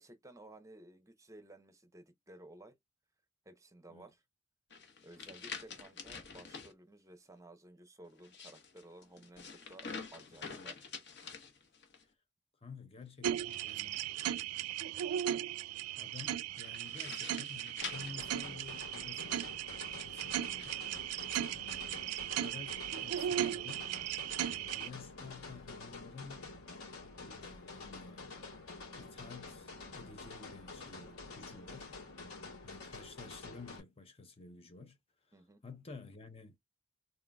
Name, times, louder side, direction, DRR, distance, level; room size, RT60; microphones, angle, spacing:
voice 1, 0.0-2.7 3.5-4.2 5.0-10.8 35.3-35.6, right 1 dB, 15° right, 0.7 m, -56 dB
sound 1, 4.7-6.7 8.1-12.0 13.4-14.7 16.6-19.0 19.7-20.7, left 5 dB, 55° left, 1.1 m, -48 dB
voice 2, 12.6-14.0 16.0-19.6 20.0-20.8 21.5-22.0 22.3-23.9 24.5-26.5 27.2-28.3 29.0-31.9 32.6-35.0 35.3-35.4 35.6-36.6, left 4 dB, 25° left, 0.6 m, -52 dB
sound 2, 13.2-24.9, right 11 dB, 90° right, 0.3 m, -37 dB
sound 3, 17.8-33.8, left 3 dB, 85° left, 2.7 m, -48 dB
3.8 x 3.8 x 2.2 m
head